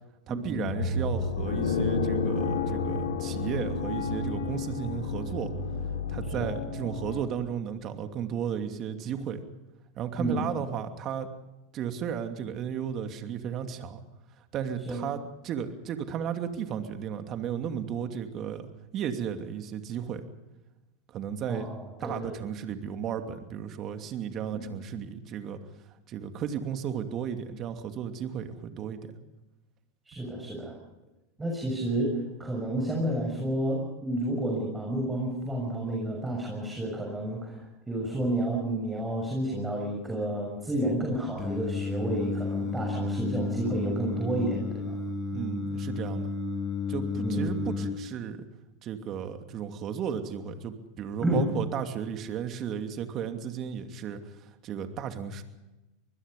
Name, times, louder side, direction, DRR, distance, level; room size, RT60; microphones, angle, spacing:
voice 1, 0.3-5.5 6.1-9.4 10.0-11.3 11.7-14.0 14.5-20.2 21.1-21.7 22.0-25.6 26.1-29.2 45.3-46.3 46.9-48.5 48.8-54.3 54.6-55.4, right 8 dB, 45° right, 7 dB, 2.7 m, -34 dB
sound 1, 0.6-7.2, left 4 dB, 90° left, 4.4 m, -30 dB
voice 2, 21.5-22.3 24.5-24.6 30.1-30.7 31.4-45.0 47.2-47.6 51.2-51.5, right 1 dB, 15° right, -1 dB, 6.7 m, -30 dB
Singing, 41.4-47.9, left 4 dB, 30° left, 7.8 m, -32 dB
25.0 x 21.0 x 5.4 m, 1.0 s
hypercardioid pair, 95°, 0 cm